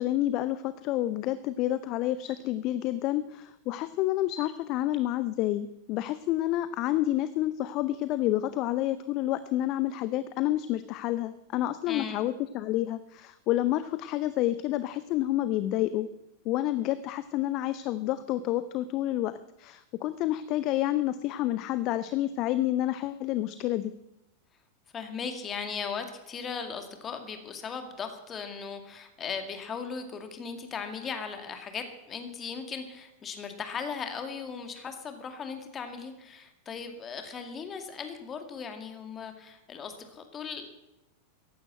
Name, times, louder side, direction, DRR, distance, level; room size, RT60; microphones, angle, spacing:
voice 1, 0.0-16.1 16.5-19.3 19.6-23.9, left 14 dB, 40° left, 14 dB, 0.6 m, -29 dB
voice 2, 11.8-12.3 24.9-40.7, left 6 dB, 25° left, 6 dB, 2.2 m, -38 dB
15.0 x 11.0 x 7.8 m, 0.90 s
figure-of-eight pair, 90°, 0 cm